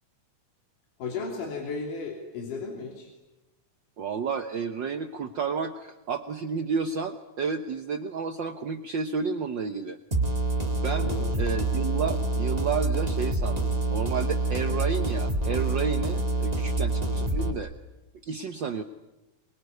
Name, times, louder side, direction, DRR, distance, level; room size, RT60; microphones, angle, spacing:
voice 1, 1.0-3.1 11.0-11.3, left 4 dB, 80° left, 1 dB, 4.7 m, -34 dB
voice 2, 4.0-10.0 10.8-17.7 18.2-18.8, right 5 dB, 80° right, 8 dB, 1.0 m, -31 dB
sound 1, 10.1-17.5, right 2 dB, 15° right, 1.6 m, -27 dB
24.5 x 23.5 x 9.5 m, 1.0 s
omnidirectional pair, 3.6 m